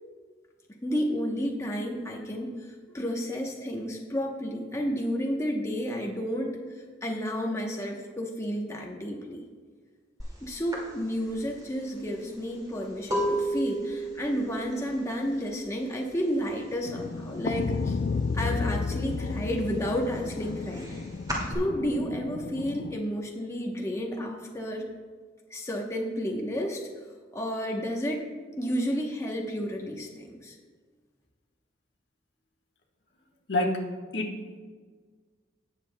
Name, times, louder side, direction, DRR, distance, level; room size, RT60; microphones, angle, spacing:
voice 1, 0.8-6.6 7.0-9.4 10.4-18.0 18.3-20.9 21.5-24.9 25.5-26.8 27.3-28.3 28.6-30.6, equal, 15° left, 0 dB, 0.9 m, -31 dB
sound 1, 10.2-10.4 10.7-16.4 16.6-17.2 17.4-18.6 19.0-21.5, right 1 dB, 20° right, 2.2 m, -33 dB
sound 2, 16.9-23.0, left 4 dB, 50° left, 0.3 m, -32 dB
voice 2, 34.1-34.6, left 1 dB, 70° left, 1 dB, 1.3 m, -27 dB
18.0 x 7.5 x 2.2 m, 1.5 s
head